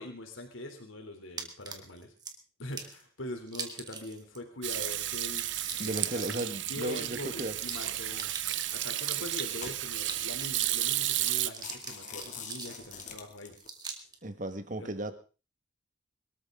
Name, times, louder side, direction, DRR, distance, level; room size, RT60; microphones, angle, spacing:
voice 1, 0.0-2.1 2.6-5.4 5.8-8.3 8.7-13.5 14.8-14.9, left 1 dB, 85° left, 3.3 m, -42 dB
sound 1, 1.4-2.3 2.7-3.0 3.5-4.4 4.7-4.8 5.0-9.1 9.6-10.8 11.2-13.1 13.6-14.2, right 5 dB, 20° right, 1.9 m, -43 dB
Hands / Sink (filling or washing), 4.6-11.5, right 13 dB, 65° right, 0.9 m, -32 dB
voice 2, 5.8-7.6 14.2-15.1, right 2 dB, 40° right, 1.6 m, -35 dB
sound 2, 8.3-8.5 9.1-10.1 10.7-10.8 11.0-11.2 11.5-13.7, left 6 dB, 40° left, 2.5 m, -45 dB
23.0 x 13.0 x 3.8 m
head